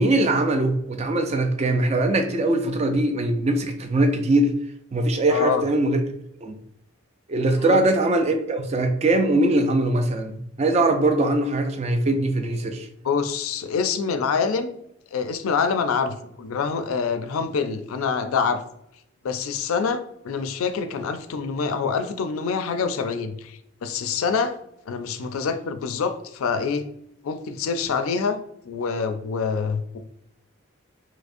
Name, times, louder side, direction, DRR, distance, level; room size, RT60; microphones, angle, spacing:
voice 1, 0.0-4.5 4.9-6.0 6.4-6.5 7.3-12.9, right 2 dB, 30° right, 6 dB, 0.3 m, -21 dB
voice 2, 5.3-5.6 7.6-7.9 13.0-14.8 15.1-18.6 19.2-24.5 24.9-26.8 27.2-28.4 28.6-30.0, left 5 dB, 75° left, 9 dB, 0.4 m, -26 dB
4.8 x 2.0 x 2.5 m, 0.77 s
head